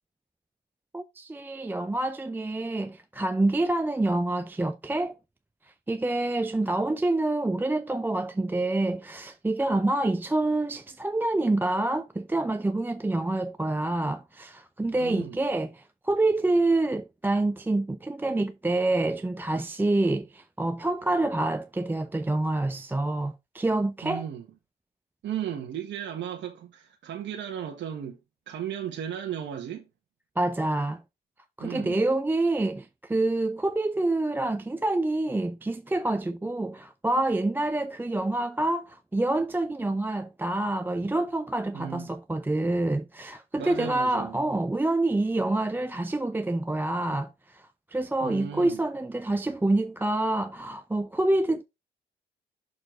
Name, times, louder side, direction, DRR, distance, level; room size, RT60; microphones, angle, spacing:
voice 1, 0.9-5.1 5.9-24.2 30.4-31.0 31.6-51.6, right 2 dB, 10° right, 0.4 m, -27 dB
voice 2, 14.9-15.4 24.0-24.5 25.2-28.2 28.5-29.9 31.6-32.0 41.7-42.1 43.6-44.4 48.2-48.8, right 9 dB, 70° right, 1.4 m, -35 dB
6.6 x 4.3 x 4.4 m
cardioid pair, 90°, 20 cm